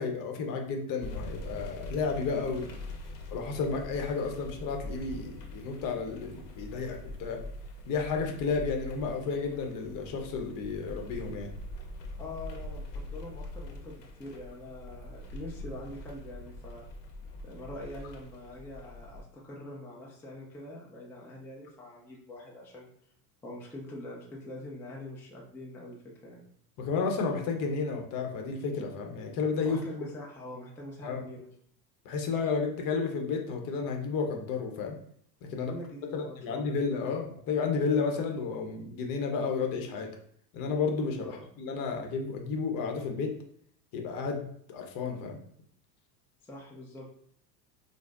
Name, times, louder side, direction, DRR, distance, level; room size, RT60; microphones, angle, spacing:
voice 1, 0.0-2.7 3.3-7.4 7.9-11.5 26.8-29.8 31.0-31.2 32.0-35.0 35.5-35.7 36.1-40.1 40.5-43.3 43.9-45.4, left 5 dB, 45° left, 3 dB, 0.8 m, -32 dB
sound 1, 1.0-19.2, left 1 dB, 80° left, 0.8 m, -43 dB
voice 2, 12.2-16.9 17.4-22.9 23.4-26.0 26.2-26.4 29.6-31.5 35.5-36.8 41.2-41.5 46.4-47.1, left 1 dB, 5° left, -4 dB, 0.4 m, -44 dB
4.9 x 2.1 x 2.4 m, 0.64 s
hypercardioid pair, 90°, 48 cm